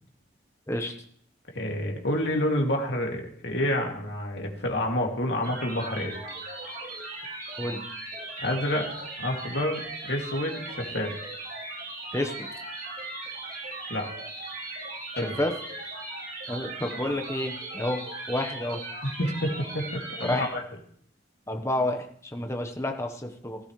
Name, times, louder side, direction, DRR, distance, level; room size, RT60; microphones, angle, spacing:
voice 1, 1.5-6.2 8.4-8.9 9.2-11.1 13.9-14.1 15.2-15.3 19.0-20.6, left 1 dB, 70° left, 1 dB, 2.6 m, -28 dB
sound 1, 5.4-20.5, right 2 dB, 50° right, 3.7 m, -38 dB
voice 2, 12.1-12.5 15.1-15.5 16.5-18.0 18.3-18.8 20.2-20.5 21.5-23.6, left 1 dB, 15° left, 5 dB, 1.2 m, -30 dB
16.5 x 13.5 x 3.3 m, 0.62 s
head